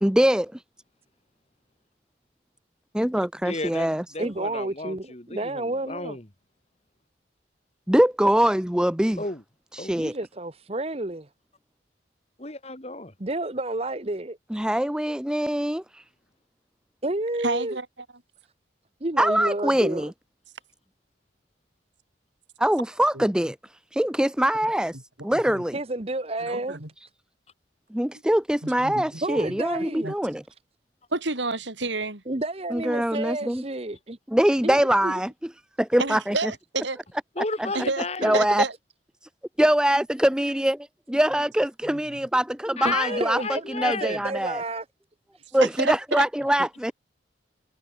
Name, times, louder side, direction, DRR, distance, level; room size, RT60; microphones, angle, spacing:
voice 1, 0.0-0.6 2.9-4.0 7.9-9.2 9.7-10.1 14.5-16.0 19.2-20.1 22.6-23.6 23.9-25.0 25.2-25.8 27.9-30.4 32.7-33.6 34.3-35.3 35.8-36.4 38.2-38.6 39.6-43.4 43.7-44.6 45.5-46.9, right 1 dB, 5° right, 0.5 m, -23 dB
voice 2, 3.4-6.2 9.2-9.4 9.8-10.0 12.4-13.1 37.4-38.4 42.8-44.2 46.6-46.7, left 3 dB, 35° left, 2.4 m, -33 dB
voice 3, 4.2-6.2 10.0-11.3 13.2-14.4 17.0-17.8 19.0-20.1 25.7-26.8 29.2-30.1 32.3-34.2 34.6-35.1 38.2-38.4 42.8-44.8 45.3-45.5, right 2 dB, 30° right, 1.1 m, -30 dB
voice 4, 17.4-17.9 23.1-23.2 25.5-25.6 26.5-26.9 28.6-29.2 30.0-30.1 31.1-32.2 33.1-33.2 36.0-37.0 37.7-38.7 41.8-42.0 45.6-46.2, right 3 dB, 75° right, 4.4 m, -29 dB
head